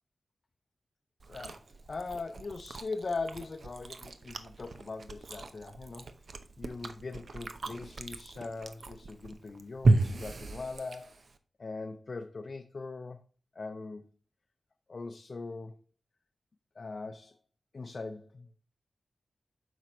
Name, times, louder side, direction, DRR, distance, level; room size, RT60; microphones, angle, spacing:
Chewing mastication, 1.2-11.4, right 2 dB, 65° right, 0.6 m, -34 dB
voice 1, 1.3-1.6 1.9-6.1 6.6-11.1 11.6-13.2 13.5-14.1 14.9-15.8 16.8-17.4 17.7-18.5, left 3 dB, 60° left, 0.5 m, -40 dB
7.4 x 5.1 x 3.0 m
cardioid pair, 40°, 0 cm